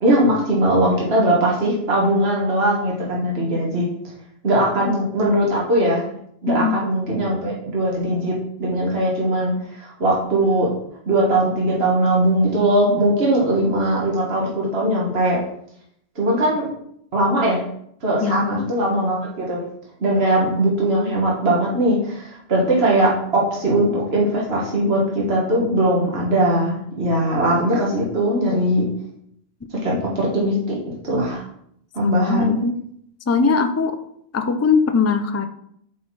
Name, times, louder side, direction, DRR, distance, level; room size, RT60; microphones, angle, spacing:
voice 1, 0.0-4.1 4.4-6.0 6.4-8.3 8.6-10.7 11.1-15.4 16.2-16.7 17.1-17.6 18.0-19.6 20.0-28.9 29.7-30.8 31.0-31.5 31.9-32.6, right 1 dB, 60° right, -4 dB, 1.8 m, -20 dB
voice 2, 6.5-6.8 18.2-18.7 32.0-32.8 33.3-34.0 34.3-35.4, left 5 dB, 25° left, 9 dB, 0.3 m, -20 dB
8.1 x 4.2 x 4.7 m, 0.71 s
omnidirectional pair, 1.2 m